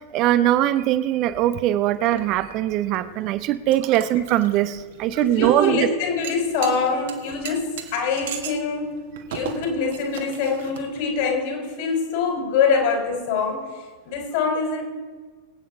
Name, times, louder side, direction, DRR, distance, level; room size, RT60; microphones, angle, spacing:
voice 1, 0.1-5.9, right 13 dB, 40° right, 13 dB, 0.6 m, -21 dB
sound 1, 1.4-11.2, right 8 dB, 55° right, 1.5 m, -40 dB
voice 2, 5.2-8.9 9.3-13.7 14.0-14.8, left 5 dB, 50° left, 1 dB, 4.0 m, -24 dB
23.0 x 8.8 x 3.7 m, 1.4 s
figure-of-eight pair, 90°, 0 cm